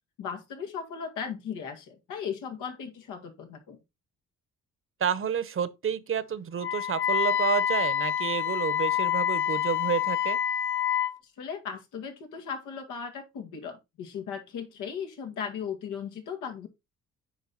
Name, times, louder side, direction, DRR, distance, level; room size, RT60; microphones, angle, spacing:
voice 1, 0.2-3.8 11.2-16.7, left 7 dB, 90° left, 2.0 m, -37 dB
voice 2, 5.0-10.4, right 8 dB, 45° right, 1.0 m, -30 dB
Wind instrument woodwind instrument, 6.6-11.2, left 10 dB, 40° left, 0.5 m, -27 dB
9.4 x 4.6 x 4.0 m
cardioid pair, 90°, 30 cm